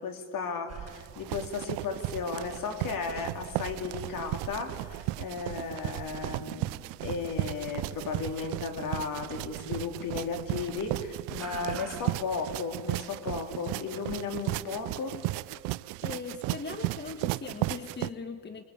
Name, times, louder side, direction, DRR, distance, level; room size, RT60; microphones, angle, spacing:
voice 1, 0.0-15.2, left 5 dB, 50° left, 5 dB, 3.8 m, -35 dB
sound 1, 0.7-12.0, right 8 dB, 35° right, 5.1 m, -49 dB
sound 2, 0.9-18.1, right 21 dB, 65° right, 0.6 m, -35 dB
voice 2, 16.0-18.6, left 4 dB, 25° left, 7 dB, 1.6 m, -39 dB
27.0 x 22.0 x 8.8 m, 2.1 s
supercardioid pair, 90°, 44 cm